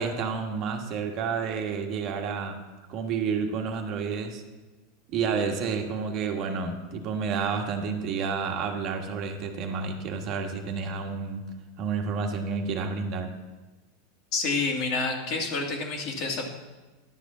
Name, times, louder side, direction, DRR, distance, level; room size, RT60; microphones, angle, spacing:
voice 1, 0.0-2.6 2.9-4.4 5.1-11.4 11.8-13.3, right 5 dB, 45° right, 4 dB, 1.3 m, -30 dB
voice 2, 14.3-16.5, left 3 dB, 50° left, 1 dB, 2.3 m, -28 dB
11.0 x 5.1 x 7.2 m, 1.2 s
supercardioid pair, 135°, 0 cm